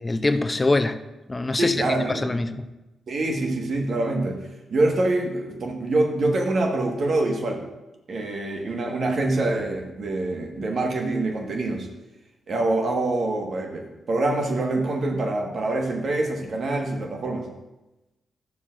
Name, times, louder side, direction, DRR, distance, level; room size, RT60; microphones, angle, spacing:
voice 1, 0.0-1.0 1.3-1.7 2.1-2.7, left 2 dB, 25° left, 9 dB, 0.6 m, -24 dB
voice 2, 1.6-2.4 3.1-7.6 8.1-11.9 12.5-17.5, right 2 dB, 60° right, 1 dB, 1.5 m, -25 dB
12.0 x 6.9 x 2.6 m, 1.0 s
hypercardioid pair, 40°, 0 cm